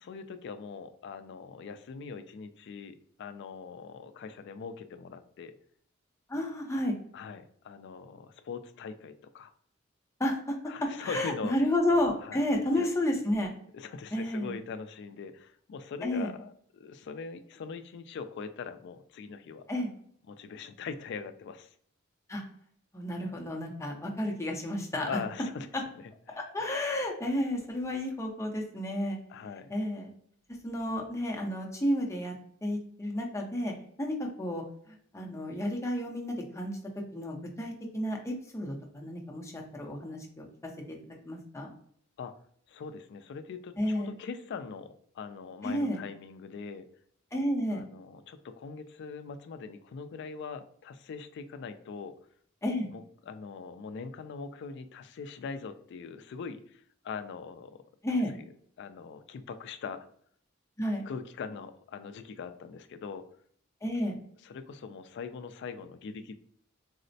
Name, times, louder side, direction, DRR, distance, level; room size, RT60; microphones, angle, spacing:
voice 1, 0.0-5.5 7.1-9.5 10.6-11.6 12.2-12.4 12.8-12.9 13.7-19.7 20.3-21.7 25.0-25.7 25.9-26.4 29.3-29.7 42.2-42.3 42.7-46.9 47.7-52.1 52.9-57.8 58.8-60.1 61.1-63.3 64.4-66.4, left 5 dB, 60° left, 10 dB, 0.3 m, -42 dB
voice 2, 6.3-7.0 10.2-10.6 11.0-13.5 14.1-14.5 16.0-16.3 19.7-19.9 22.3-22.4 22.9-25.1 26.4-29.2 29.7-30.1 30.6-32.3 32.6-33.7 34.0-36.8 37.1-40.5 41.2-41.7 43.8-44.1 45.6-46.0 47.3-47.8 52.6-52.9 58.0-58.3 60.8-61.0 63.8-64.2, left 1 dB, 15° left, 0 dB, 0.6 m, -31 dB
4.1 x 2.0 x 2.6 m, 0.62 s
head